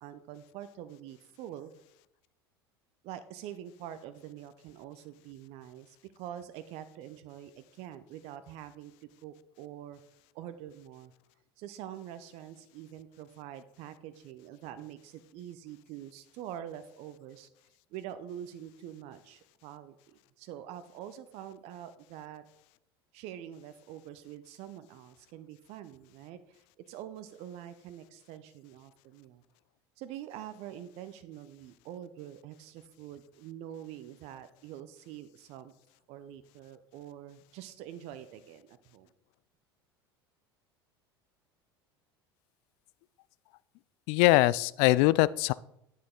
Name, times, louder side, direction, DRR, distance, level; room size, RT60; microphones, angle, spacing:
voice 1, 0.0-1.7 3.0-8.9 9.2-10.0 10.3-11.1 11.6-17.5 17.9-22.4 23.1-26.6 26.9-29.4 30.0-35.7 36.1-39.1, right 11 dB, 55° right, 11 dB, 0.7 m, -45 dB
voice 2, 44.1-45.5, left 18 dB, 60° left, 19 dB, 0.4 m, -22 dB
9.5 x 6.4 x 3.8 m, 0.77 s
hypercardioid pair, 75°, 13 cm